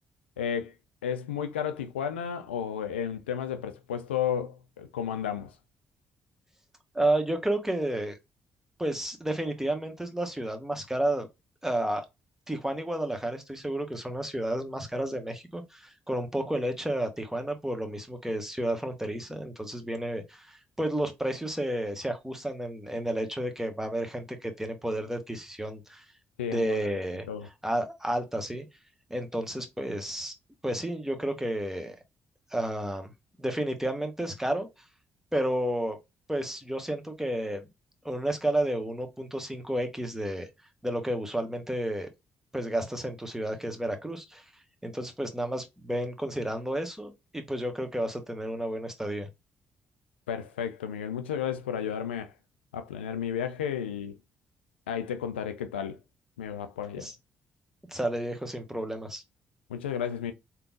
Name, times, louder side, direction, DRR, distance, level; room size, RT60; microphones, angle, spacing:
voice 1, 0.4-0.7 1.0-5.5 26.4-26.9 27.3-27.5 50.3-52.3 52.7-54.2 54.9-56.0 56.4-57.1 59.7-60.3, left 8 dB, 90° left, 0.3 m, -32 dB
voice 2, 6.9-8.1 8.8-11.3 11.6-12.0 12.5-26.0 26.5-27.2 27.6-28.6 29.1-30.3 30.6-31.9 32.5-33.1 33.4-34.7 35.3-36.0 36.3-37.7 38.0-40.5 40.8-42.1 42.5-44.4 44.8-49.3 57.0-57.2 57.9-59.2, right 1 dB, 5° right, 1.2 m, -31 dB
3.6 x 2.9 x 2.4 m
hypercardioid pair, 45°, 6 cm